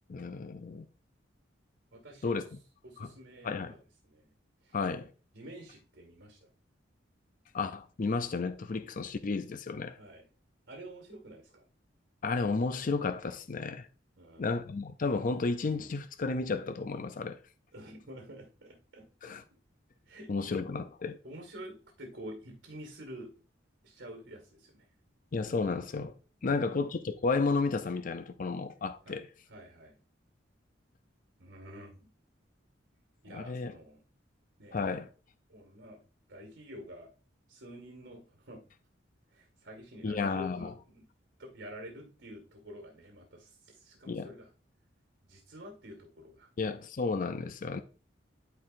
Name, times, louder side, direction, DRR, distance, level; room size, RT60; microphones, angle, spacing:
voice 1, 0.1-0.9 2.2-2.6 3.0-3.1 3.4-3.7 4.7-5.1 7.5-10.0 12.2-13.9 14.4-17.4 19.2-19.4 20.3-21.2 25.3-26.2 26.4-29.3 33.3-33.7 34.7-35.1 40.0-40.7 44.1-44.3 46.6-47.8, left 4 dB, 45° left, 0.5 m, -32 dB
voice 2, 1.9-2.5 2.8-4.3 4.6-4.7 5.3-6.5 9.9-10.3 10.7-11.7 14.2-14.5 17.7-19.3 20.1-20.5 21.2-23.3 23.8-24.9 26.4-26.8 29.1-29.2 29.5-30.0 31.4-32.1 33.2-34.0 34.6-34.8 35.5-36.0 36.3-37.1 37.5-38.6 39.3-41.1 41.4-44.5 45.3-46.5, equal, 75° right, 1.9 m, -49 dB
12.5 x 4.6 x 2.6 m
head